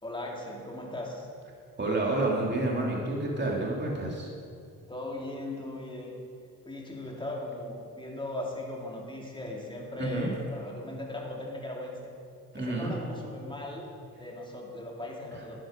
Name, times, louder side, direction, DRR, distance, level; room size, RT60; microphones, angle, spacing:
voice 1, 0.0-1.3 4.9-6.1 6.6-12.0 12.5-13.8 14.2-15.6, left 1 dB, 15° left, -2 dB, 3.1 m, -38 dB
voice 2, 1.8-4.3 10.0-10.3 12.5-12.9, right 2 dB, 25° right, -2 dB, 2.5 m, -29 dB
10.5 x 10.5 x 5.1 m, 2.4 s
supercardioid pair, 65°, 38 cm